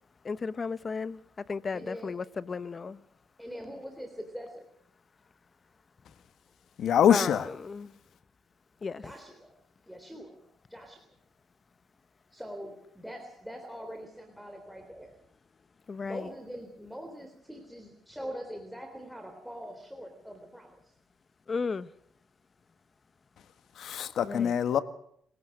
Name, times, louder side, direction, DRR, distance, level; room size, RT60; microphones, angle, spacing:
voice 1, 0.2-1.2 1.5-3.0 7.1-7.9 8.8-9.1 15.9-16.3 21.5-21.9 24.2-24.5, left 4 dB, 35° left, 1.0 m, -34 dB
voice 2, 1.7-2.1 3.4-4.7 9.0-9.6 9.9-10.4 10.7-11.1 12.3-15.1 16.0-20.8, equal, ahead, 3.4 m, -43 dB
voice 3, 6.8-7.4 23.8-24.8, left 9 dB, 70° left, 1.5 m, -24 dB
26.5 x 16.5 x 6.5 m
cardioid pair, 90°, 0 cm